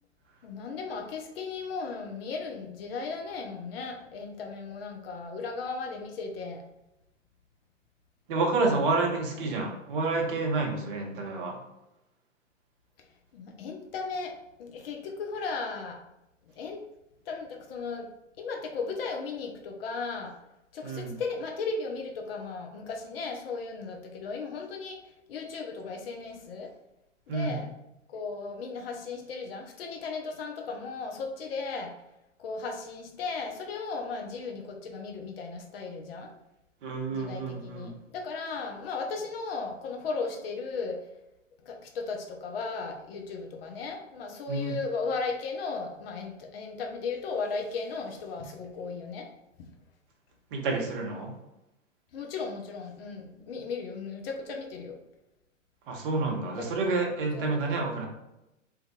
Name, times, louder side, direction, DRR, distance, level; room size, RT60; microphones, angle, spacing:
voice 1, 0.4-6.6 13.3-16.0 16.6-16.8 17.3-18.1 18.4-20.3 20.7-25.0 25.3-26.7 27.3-27.7 28.1-31.9 32.4-36.3 37.1-41.0 41.6-49.3 49.6-49.7 52.1-55.0 56.6-56.8 57.3-57.6, left 4 dB, 50° left, 2 dB, 0.6 m, -36 dB
voice 2, 8.3-11.6 20.8-21.2 27.3-27.6 36.8-37.9 44.5-44.8 50.5-51.3 55.9-58.1, right 3 dB, 45° right, 1 dB, 0.7 m, -29 dB
2.5 x 2.3 x 2.6 m, 0.90 s
figure-of-eight pair, 110°, 38 cm